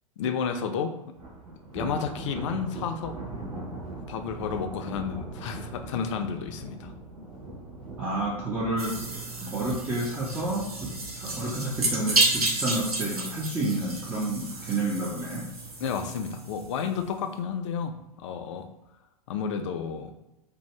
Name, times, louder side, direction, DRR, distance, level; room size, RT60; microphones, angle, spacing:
voice 1, 0.2-1.0 1.7-3.2 4.1-6.9 11.3-11.4 15.8-18.7 19.3-20.1, left 6 dB, 55° left, 7 dB, 0.4 m, -31 dB
Thunder, 1.1-14.4 14.8-15.1 15.5-15.6 16.5-17.1, right 2 dB, 35° right, 1.3 m, -41 dB
voice 2, 8.0-9.0 9.4-15.5, right 2 dB, 10° right, -5 dB, 0.5 m, -30 dB
sound 1, 8.8-16.9, right 2 dB, 90° right, 0.6 m, -31 dB
2.6 x 2.0 x 3.1 m, 0.89 s
figure-of-eight pair, 100°, 19 cm